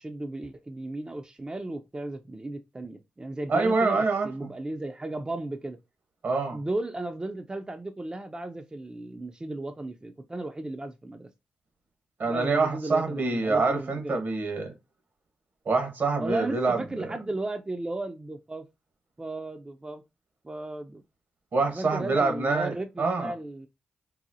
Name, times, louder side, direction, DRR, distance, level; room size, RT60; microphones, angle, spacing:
voice 1, 0.0-5.8 6.5-11.3 12.3-14.2 16.2-18.7 19.2-20.0 20.4-21.0 21.7-23.7, right 2 dB, 25° right, 0.4 m, -35 dB
voice 2, 3.5-4.3 6.2-6.6 12.2-14.7 15.6-17.1 21.5-23.3, right 3 dB, 65° right, 1.2 m, -26 dB
4.0 x 2.0 x 2.7 m
supercardioid pair, 45°, 4 cm